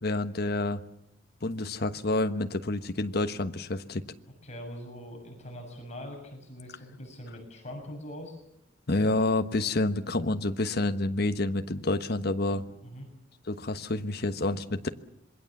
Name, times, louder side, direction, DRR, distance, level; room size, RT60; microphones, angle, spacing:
voice 1, 0.0-0.8 1.4-4.0 8.9-12.6 13.5-14.9, left 2 dB, 60° left, 8 dB, 1.2 m, -28 dB
voice 2, 4.4-8.4 12.5-13.1, equal, 40° left, 2 dB, 6.7 m, -43 dB
26.5 x 21.5 x 7.3 m, 0.77 s
head